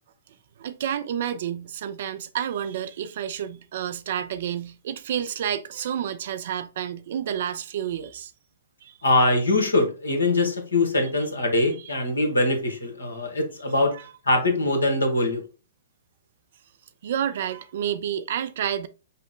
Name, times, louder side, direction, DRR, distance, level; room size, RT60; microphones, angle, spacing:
voice 1, 0.6-8.3 8.8-8.9 13.9-14.1 17.0-18.9, right 9 dB, 55° right, 0.4 m, -30 dB
voice 2, 9.0-13.9 14.2-15.4, left 2 dB, 75° left, 1.2 m, -22 dB
5.5 x 2.1 x 3.7 m
figure-of-eight pair, 115°, 0 cm